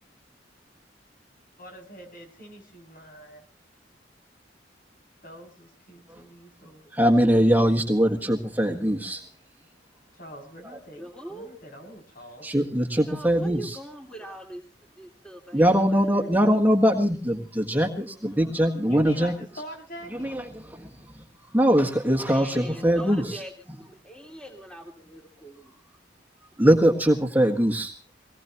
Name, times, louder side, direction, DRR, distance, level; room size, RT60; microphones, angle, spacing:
voice 1, 1.6-3.4 5.2-7.0 10.1-12.5 18.8-20.3, equal, 50° left, 5 dB, 6.9 m, -44 dB
voice 2, 6.9-9.2 10.6-10.8 12.4-13.8 15.5-19.6 20.0-20.9 21.5-23.4 26.6-27.9, equal, 10° right, 3 dB, 1.6 m, -22 dB
voice 3, 11.0-11.5 13.1-14.6 15.0-15.6 15.9-16.3 22.2-25.7, right 1 dB, 5° left, 1 dB, 2.5 m, -42 dB
24.0 x 19.0 x 2.9 m, 0.36 s
head